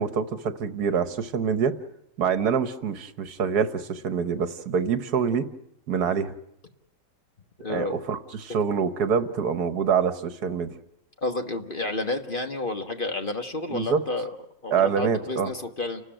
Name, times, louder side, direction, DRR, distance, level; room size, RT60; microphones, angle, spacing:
voice 1, 0.0-1.8 2.2-5.5 5.9-6.3 7.7-10.7 13.7-14.0 14.7-15.5, right 6 dB, 75° right, 11 dB, 1.6 m, -25 dB
voice 2, 7.6-8.0 11.2-14.3 14.6-16.0, left 2 dB, 35° left, 5 dB, 1.5 m, -30 dB
29.5 x 13.5 x 8.9 m, 0.78 s
omnidirectional pair, 1.7 m